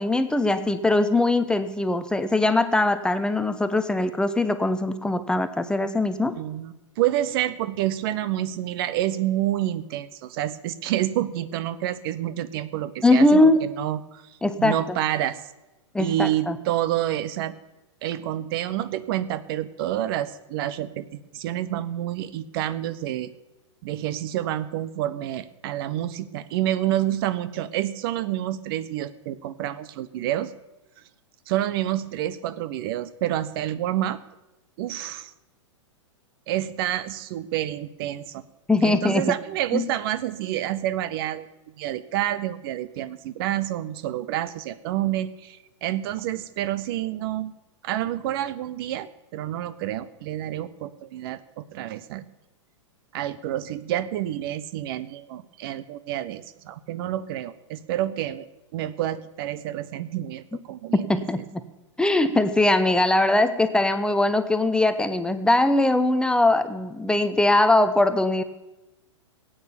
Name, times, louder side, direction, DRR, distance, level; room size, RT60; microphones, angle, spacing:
voice 1, 0.0-6.4 13.0-13.6 14.4-15.0 15.9-16.6 38.7-39.3 39.7-39.9 60.9-61.6 62.0-68.4, left 2 dB, 5° left, 10 dB, 0.8 m, -21 dB
voice 2, 6.4-15.4 16.0-17.6 18.0-23.3 23.8-30.5 31.5-34.2 34.8-35.3 36.5-38.4 38.8-41.5 41.8-47.5 47.8-52.3 53.1-58.5 58.7-61.1, right 13 dB, 50° right, 15 dB, 0.8 m, -28 dB
17.0 x 8.8 x 7.1 m, 1.0 s
figure-of-eight pair, 105°, 16 cm